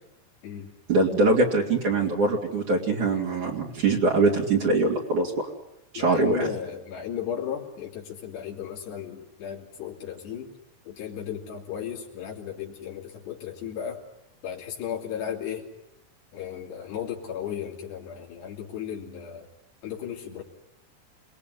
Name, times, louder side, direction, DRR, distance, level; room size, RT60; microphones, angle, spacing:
voice 1, 0.9-5.3 5.9-6.5, right 3 dB, 50° right, 2 dB, 4.0 m, -23 dB
voice 2, 6.0-10.5 10.9-14.0 14.4-15.7 16.3-19.5 19.8-20.4, left 9 dB, 85° left, -2 dB, 5.3 m, -35 dB
28.5 x 21.0 x 9.9 m, 0.87 s
omnidirectional pair, 4.7 m